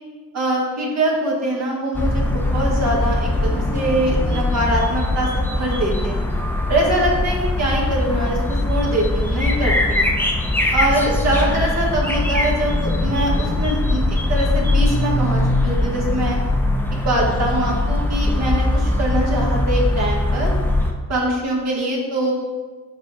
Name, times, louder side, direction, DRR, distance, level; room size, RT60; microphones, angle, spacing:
voice 1, 0.3-6.2 6.7-10.1 10.7-14.0 14.3-16.4 17.0-20.5 21.1-22.3, right 1 dB, 60° right, -2 dB, 1.7 m, -23 dB
sound 1, 1.9-20.9, left 1 dB, 5° left, 0.6 m, -21 dB
5.2 x 4.1 x 4.8 m, 1.4 s
cardioid pair, 90°, 30 cm